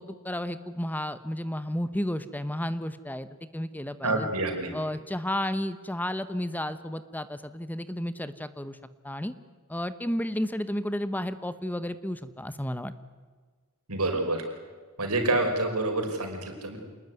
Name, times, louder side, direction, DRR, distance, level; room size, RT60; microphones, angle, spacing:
voice 1, 0.0-3.3 3.5-4.3 4.7-8.8 9.0-9.3 9.7-12.9, left 1 dB, 10° left, 13 dB, 0.9 m, -32 dB
voice 2, 4.0-4.7 13.9-14.4 15.0-16.8, right 2 dB, 80° right, 4 dB, 5.3 m, -27 dB
27.5 x 20.0 x 9.5 m, 1.5 s
head